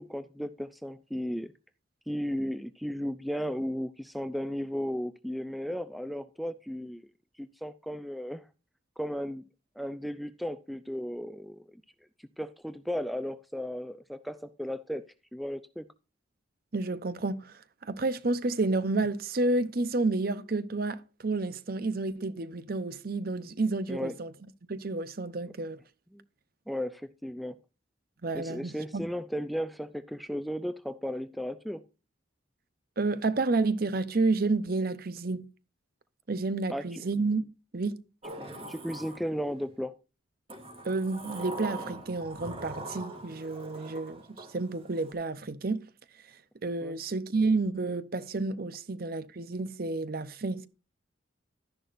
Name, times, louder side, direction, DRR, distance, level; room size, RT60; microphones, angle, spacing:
voice 1, 0.0-1.5 2.1-7.1 7.4-8.4 9.0-9.4 9.8-11.8 12.4-15.0 15.3-15.9 23.9-24.1 26.1-26.2 26.7-27.6 28.3-31.8 36.7-37.0 38.4-40.0 46.8-47.0, equal, ahead, 0.4 m, -35 dB
voice 2, 16.7-24.3 24.7-25.8 28.2-29.1 33.0-35.4 36.3-37.5 37.7-38.0 40.8-45.9 46.6-50.7, right 3 dB, 50° right, 0.7 m, -30 dB
Sliding door, 38.2-39.7 40.5-45.1, right 2 dB, 30° right, 2.3 m, -42 dB
12.0 x 10.5 x 2.6 m
head